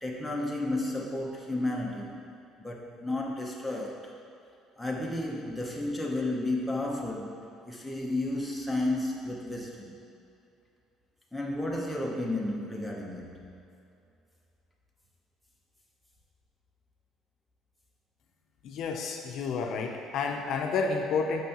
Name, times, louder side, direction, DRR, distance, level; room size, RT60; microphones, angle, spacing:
voice 1, 0.0-2.2 2.6-4.1 4.8-7.3 7.7-10.0 11.3-13.6, left 2 dB, ahead, -2 dB, 0.8 m, -32 dB
voice 2, 18.6-21.4, left 4 dB, 55° left, 3 dB, 0.5 m, -30 dB
9.2 x 5.5 x 2.9 m, 2.6 s
cardioid pair, 150°, 0 cm